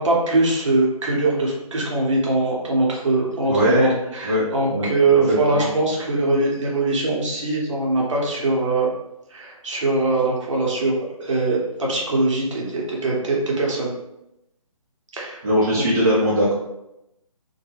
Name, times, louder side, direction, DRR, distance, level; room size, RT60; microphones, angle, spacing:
voice 1, 0.0-8.9 9.3-10.9 11.2-13.9 15.1-15.4 15.7-15.8, right 2 dB, 55° right, -2 dB, 0.8 m, -22 dB
voice 2, 3.5-3.9 4.2-4.4 4.7-4.9 5.3-5.7 15.4-16.5, equal, 30° right, -7 dB, 0.5 m, -19 dB
2.2 x 2.1 x 3.2 m, 0.86 s
hypercardioid pair, 160°, 19 cm